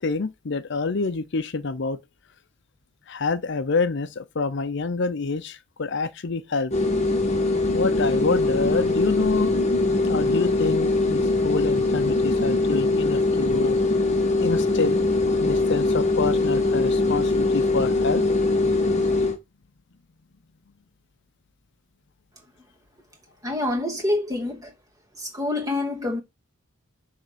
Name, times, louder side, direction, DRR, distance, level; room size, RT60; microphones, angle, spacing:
voice 1, 0.0-2.0 3.1-6.7 7.7-9.5 10.0-13.8 14.4-15.0 15.4-18.2, left 4 dB, 55° left, 0.6 m, -27 dB
sound 1, 6.7-19.4, left 2 dB, 30° left, 1.6 m, -22 dB
voice 2, 23.4-24.7 25.2-26.2, left 2 dB, 15° right, 2.5 m, -26 dB
10.0 x 3.5 x 6.8 m
head